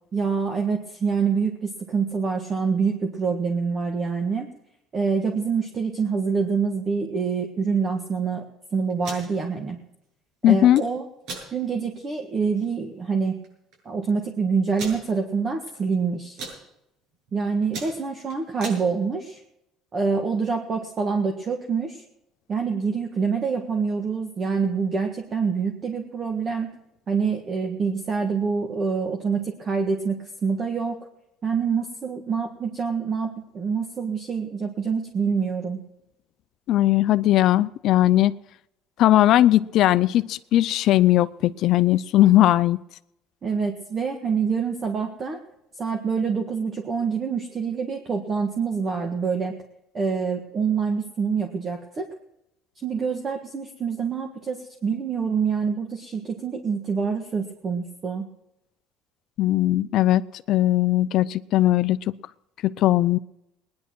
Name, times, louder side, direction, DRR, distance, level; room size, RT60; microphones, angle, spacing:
voice 1, 0.1-4.5 4.9-8.4 8.7-9.8 10.4-11.0 11.5-13.3 13.8-16.4 17.3-19.4 19.9-22.0 22.5-26.7 27.1-31.0 31.4-35.8 43.4-45.4 45.8-49.5 49.9-52.1 52.8-58.2, right 5 dB, 30° right, 3 dB, 1.6 m, -26 dB
sound 1, 8.9-9.3 10.5-10.8 11.2-11.5 12.0-12.1 12.4-12.7 13.4-13.5 13.7-13.8 14.8-15.0 15.6-15.9 16.2-16.6 17.1-17.3 17.6-18.8, right 3 dB, 70° right, 7.4 m, -36 dB
voice 2, 10.4-10.8 36.7-38.3 39.0-42.8 59.4-60.2 60.5-62.0 62.6-63.2, left 14 dB, 60° left, 14 dB, 0.5 m, -19 dB
19.0 x 10.5 x 6.1 m, 0.84 s
cardioid pair, 130°, 0 cm